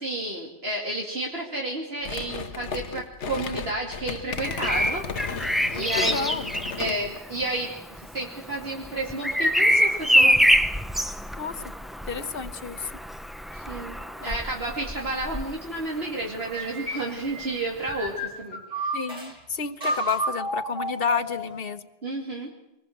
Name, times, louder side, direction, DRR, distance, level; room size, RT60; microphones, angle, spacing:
voice 1, 0.0-5.0 5.7-6.4 6.8-10.5 13.5-19.0 22.0-22.5, right 2 dB, 60° right, -2 dB, 2.7 m, -31 dB
sound 1, 2.0-7.2, left 5 dB, 90° left, 1.4 m, -34 dB
Bird vocalization bird call bird song, 4.3-16.2 17.9-18.1, equal, ahead, 0.7 m, -26 dB
voice 2, 5.7-6.4 10.1-10.4 11.4-11.6 12.0-12.9 14.2-14.4 18.9-21.9, left 5 dB, 55° left, 11 dB, 1.3 m, -31 dB
sound 2, 16.5-19.3 19.8-21.6, right 1 dB, 40° right, 5.4 m, -31 dB
24.5 x 20.5 x 7.9 m, 0.94 s
omnidirectional pair, 1.2 m